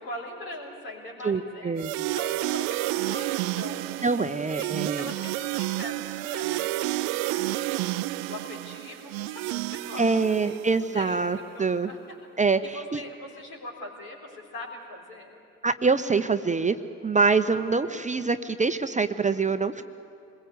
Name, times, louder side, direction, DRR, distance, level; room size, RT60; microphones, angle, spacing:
voice 1, 0.0-1.9 2.1-4.3 4.6-10.1 10.4-10.6 10.9-12.2 12.6-15.4 17.5-17.6, left 1 dB, 65° left, -1 dB, 3.9 m, -42 dB
voice 2, 1.2-1.9 4.0-5.1 10.0-11.9 12.4-12.6 12.9-13.0 15.6-16.8 17.0-19.8, right 4 dB, 20° right, 10 dB, 0.7 m, -25 dB
sound 1, 1.8-10.9, right 17 dB, 65° right, 0.6 m, -30 dB
27.5 x 21.5 x 8.2 m, 2.8 s
figure-of-eight pair, 40°, 40 cm